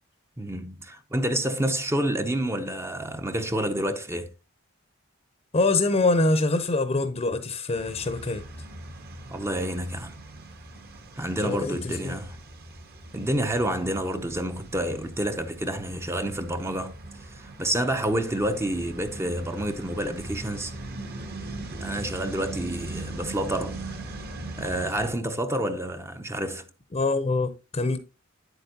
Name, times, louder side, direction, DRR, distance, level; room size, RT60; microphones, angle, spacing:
voice 1, 0.4-4.3 9.3-10.2 11.2-12.4 13.1-17.0 17.3-20.7 21.7-23.8 24.6-26.7, right 1 dB, 15° right, 0.6 m, -28 dB
voice 2, 5.5-8.4 11.4-12.2 26.9-28.0, left 2 dB, 30° left, 0.6 m, -24 dB
sound 1, 7.7-25.1, right 2 dB, 50° right, 1.3 m, -40 dB
8.9 x 7.9 x 2.8 m
head